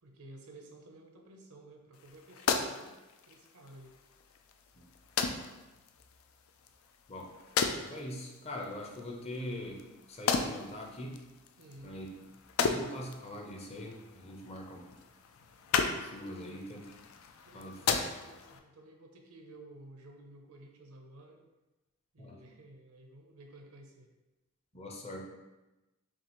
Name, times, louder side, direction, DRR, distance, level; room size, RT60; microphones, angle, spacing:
voice 1, 0.0-3.9 11.6-11.9 16.4-16.8 17.4-21.4 22.1-24.1, right 2 dB, 85° right, 2 dB, 0.7 m, -54 dB
sound 1, 1.9-18.6, left 5 dB, 75° left, 0.4 m, -37 dB
voice 2, 7.8-11.2 11.8-12.1 12.6-14.9 15.9-16.9 17.5-17.8 22.2-22.4 24.7-25.2, left 1 dB, 30° left, 0 dB, 0.6 m, -42 dB
5.9 x 2.4 x 3.0 m, 1.1 s
head